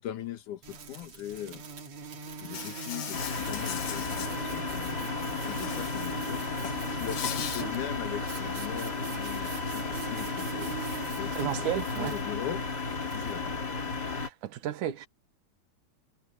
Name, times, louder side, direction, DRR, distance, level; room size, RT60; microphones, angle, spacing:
voice 1, 0.0-1.6 2.4-6.4 6.8-10.8 11.2-12.6 13.1-13.5, left 11 dB, 85° left, 2.9 m, -40 dB
sound 1, 0.6-13.4, right 6 dB, 60° right, 3.4 m, -42 dB
Insect, 2.5-4.3 5.4-6.2 6.5-7.6, left 10 dB, 60° left, 1.9 m, -39 dB
sound 2, 3.1-14.3, left 4 dB, 35° left, 3.5 m, -34 dB
voice 2, 11.3-12.2 14.0-15.1, right 11 dB, 85° right, 2.7 m, -33 dB
omnidirectional pair, 3.5 m